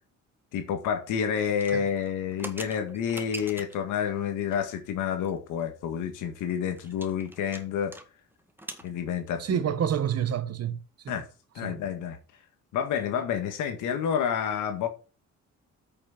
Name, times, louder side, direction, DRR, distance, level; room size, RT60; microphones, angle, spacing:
voice 1, 0.5-7.9 8.8-9.8 11.1-11.3 11.5-12.2 12.7-14.9, left 8 dB, 90° left, 1.8 m, -29 dB
sound 1, 1.5-3.9 4.5-4.9 5.2-5.3 5.6-5.7 6.1-8.1 8.3-8.9, right 1 dB, 5° right, 1.8 m, -42 dB
voice 2, 9.4-10.8 11.0-11.2 11.6-11.7, right 9 dB, 55° right, 1.3 m, -28 dB
8.8 x 6.4 x 6.0 m
cardioid pair, 90°, 30 cm